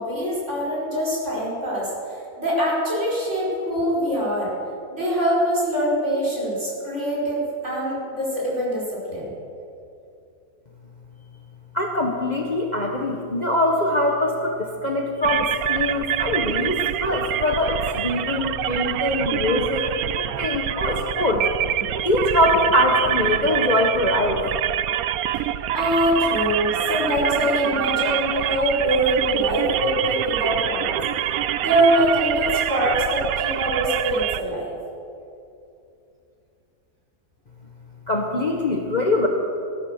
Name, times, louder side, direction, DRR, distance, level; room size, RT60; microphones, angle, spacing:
voice 1, 0.0-4.5 4.9-9.3 25.7-31.0 31.6-34.8, right 1 dB, 45° right, -6 dB, 5.3 m, -23 dB
voice 2, 11.7-21.4 22.0-24.4 38.1-39.3, left 1 dB, 30° left, 1 dB, 1.2 m, -23 dB
Data Transmission, 15.2-34.4, right 11 dB, 70° right, 1.0 m, -26 dB
16.0 x 12.5 x 6.5 m, 2.7 s
omnidirectional pair, 1.7 m